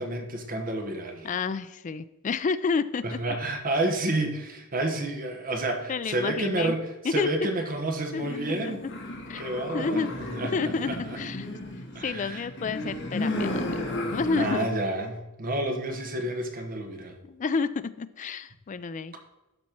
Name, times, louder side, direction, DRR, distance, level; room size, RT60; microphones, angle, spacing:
voice 1, 0.0-1.3 3.0-8.8 9.4-11.2 11.9-12.5 14.3-17.2, right 1 dB, 40° right, 4 dB, 1.2 m, -30 dB
voice 2, 1.2-3.2 5.9-6.8 7.0-7.3 8.1-8.9 9.3-9.4 9.7-10.1 10.5-11.5 12.0-13.7 14.1-14.7 17.3-19.1, left 4 dB, 35° left, 14 dB, 0.3 m, -30 dB
sound 1, 8.1-14.5, left 1 dB, 55° left, 1.4 m, -33 dB
12.0 x 4.2 x 4.5 m, 0.99 s
head